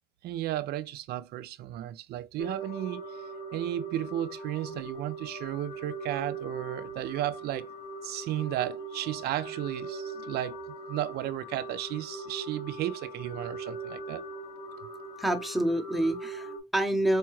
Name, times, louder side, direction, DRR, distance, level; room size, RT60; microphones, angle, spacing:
voice 1, 0.2-3.2 3.5-7.7 8.0-14.2, right 13 dB, 70° right, 0.4 m, -34 dB
sound 1, 2.4-16.6, right 2 dB, 75° left, 0.9 m, -40 dB
voice 2, 15.2-17.2, right 1 dB, ahead, 0.8 m, -27 dB
4.6 x 2.3 x 3.0 m
cardioid pair, 110°, 17 cm